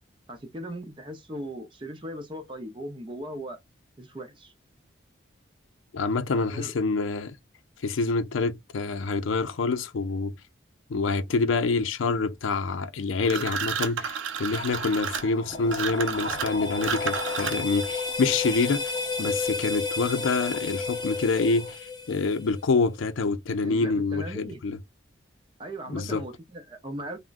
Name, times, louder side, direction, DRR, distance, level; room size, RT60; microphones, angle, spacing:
voice 1, 0.3-3.6 4.0-4.5 6.3-6.7 23.6-24.6 25.6-27.2, right 1 dB, 25° right, 0.6 m, -38 dB
voice 2, 5.9-7.4 7.8-10.3 10.9-18.8 19.2-24.8 25.9-26.2, left 4 dB, 80° left, 0.4 m, -26 dB
sound 1, 13.2-17.8, right 6 dB, 80° right, 0.5 m, -31 dB
sound 2, 14.5-21.8, left 2 dB, 40° left, 0.9 m, -39 dB
sound 3, 15.5-22.6, left 4 dB, 20° left, 0.6 m, -32 dB
3.5 x 2.1 x 2.4 m
head